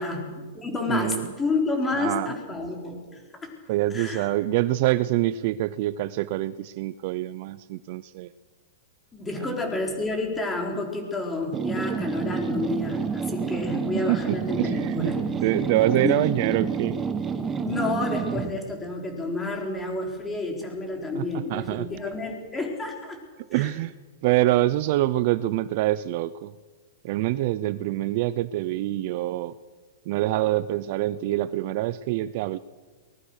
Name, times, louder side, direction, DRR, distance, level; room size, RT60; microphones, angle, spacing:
voice 1, 0.0-3.5 3.9-4.3 9.1-15.2 16.0-16.2 17.6-23.2 23.5-23.7, left 3 dB, 10° left, 2 dB, 4.3 m, -30 dB
voice 2, 0.9-1.3 2.0-2.3 3.7-8.3 9.3-9.5 14.1-15.1 15.4-17.0 21.1-21.9 23.5-23.9 24.2-26.5 27.0-29.5 30.1-32.6, right 15 dB, 45° right, 17 dB, 0.6 m, -25 dB
sound 1, 11.5-18.6, right 6 dB, 15° right, 1.3 m, -29 dB
23.5 x 20.0 x 6.5 m, 1.4 s
hypercardioid pair, 155°, 0 cm